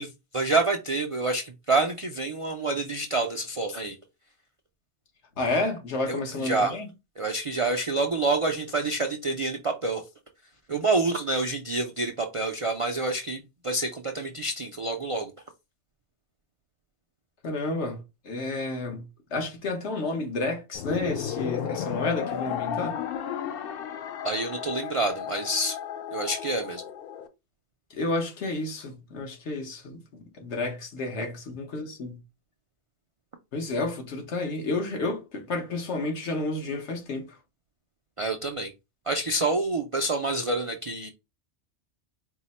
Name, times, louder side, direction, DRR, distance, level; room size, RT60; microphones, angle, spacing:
voice 1, 0.0-3.9 6.1-6.7 7.2-10.0 10.7-15.3 24.2-25.8 26.1-26.8 38.2-38.7 39.1-41.1, right 2 dB, 55° right, 0.3 m, -27 dB
voice 2, 5.4-6.9 17.4-19.1 19.3-23.0 27.9-32.2 33.5-37.4, left 2 dB, 75° left, 1.3 m, -31 dB
sound 1, 20.7-27.3, left 9 dB, 60° left, 0.7 m, -33 dB
4.5 x 2.1 x 4.1 m
omnidirectional pair, 1.2 m